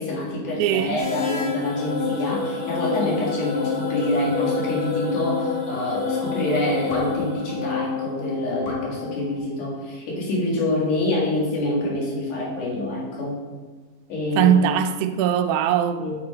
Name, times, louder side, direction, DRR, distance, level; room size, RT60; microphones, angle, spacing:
voice 1, 0.0-13.4 14.1-14.6 15.9-16.2, left 1 dB, 70° left, 3.4 m, -26 dB
voice 2, 0.6-1.0 14.4-16.2, right 9 dB, 80° right, 1.9 m, -21 dB
sound 1, 1.0-9.4, left 5 dB, 50° left, 1.7 m, -28 dB
8.3 x 5.7 x 4.5 m
omnidirectional pair, 3.8 m